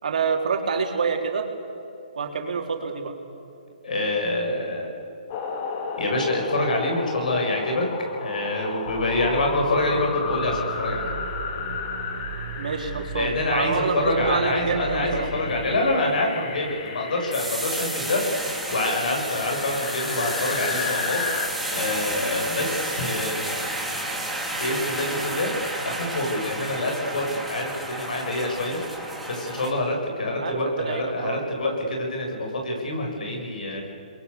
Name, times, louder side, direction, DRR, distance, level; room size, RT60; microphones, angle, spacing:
voice 1, 0.0-1.5 2.2-3.2 12.6-15.3 30.4-31.5, right 5 dB, 65° right, 3 dB, 3.9 m, -27 dB
voice 2, 3.8-4.9 6.0-7.9 8.2-11.1 13.1-23.4 24.6-25.5 25.8-28.8 29.3-33.8, left 2 dB, 70° left, 1 dB, 7.4 m, -26 dB
sound 1, 5.3-21.5, left 5 dB, 40° left, 2.8 m, -33 dB
sound 2, 8.8-15.8, right 6 dB, 45° right, 3.9 m, -37 dB
sound 3, 17.3-29.7, right 1 dB, ahead, 3.5 m, -31 dB
29.5 x 22.0 x 7.2 m, 2.9 s
hypercardioid pair, 140°, 4 cm